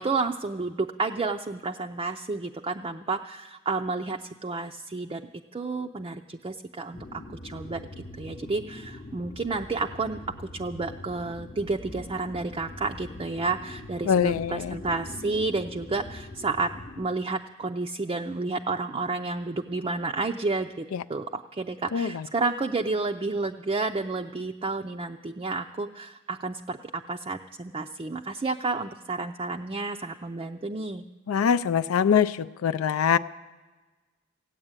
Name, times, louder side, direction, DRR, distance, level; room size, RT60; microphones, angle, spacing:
voice 1, 0.0-5.2 5.5-7.0 7.4-7.8 8.2-16.7 17.0-31.0, right 3 dB, 25° right, 3 dB, 0.4 m, -31 dB
sound 1, 6.9-17.1, left 1 dB, 35° left, 0.8 m, -43 dB
voice 2, 14.1-14.8 20.9-21.0 21.9-22.2 31.3-33.2, left 7 dB, 85° left, 12 dB, 0.4 m, -23 dB
16.0 x 8.8 x 8.8 m, 1.3 s
head